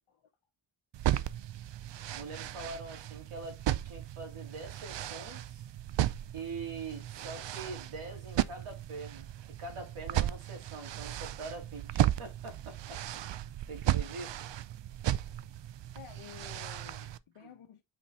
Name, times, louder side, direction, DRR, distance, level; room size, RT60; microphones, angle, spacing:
sound 1, 0.9-17.2, right 13 dB, 60° right, 0.5 m, -35 dB
voice 1, 2.1-5.7 6.3-13.0 13.3-14.4 17.4-17.5, right 3 dB, 85° right, 2.4 m, -44 dB
voice 2, 15.9-17.8, left 9 dB, 85° left, 0.9 m, -52 dB
5.7 x 4.4 x 4.1 m
wide cardioid pair, 100°, 49 cm